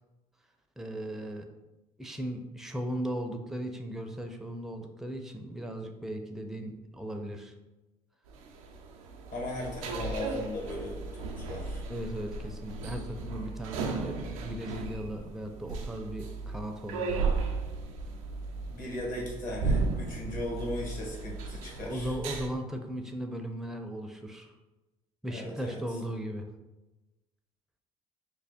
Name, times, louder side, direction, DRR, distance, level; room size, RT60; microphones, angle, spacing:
voice 1, 0.8-1.5 2.0-7.5 11.9-17.3 21.8-24.5 25.2-26.5, right 1 dB, ahead, 4 dB, 0.5 m, -37 dB
sound 1, 8.3-22.5, right 3 dB, 90° right, 0.4 m, -35 dB
voice 2, 9.3-11.8 18.7-22.2 25.3-25.8, left 1 dB, 50° left, -2 dB, 1.4 m, -37 dB
3.3 x 2.1 x 4.3 m, 1.0 s
hypercardioid pair, 60°, 17 cm